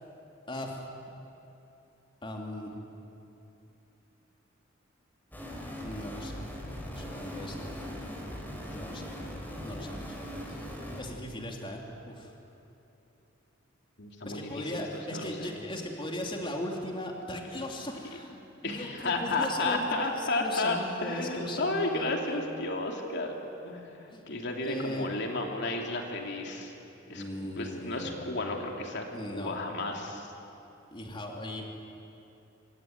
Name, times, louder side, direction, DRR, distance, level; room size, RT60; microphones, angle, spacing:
voice 1, 0.5-0.8 2.2-2.7 5.8-6.5 6.9-7.7 8.7-9.1 9.6-10.1 10.5-10.7 11.0-12.3 14.2-22.1 24.1-24.2 24.6-25.1 27.1-28.2 29.1-29.6 30.9-31.6, left 1 dB, 25° left, 0 dB, 3.1 m, -38 dB
sound 1, 5.3-11.0, equal, 10° left, 5.1 m, -40 dB
voice 2, 14.0-14.8 15.1-15.5 18.6-23.4 23.6-24.0 24.3-26.7 27.1-29.0 29.3-30.3, left 2 dB, 60° left, 1 dB, 2.9 m, -32 dB
25.5 x 25.0 x 9.4 m, 2.8 s
head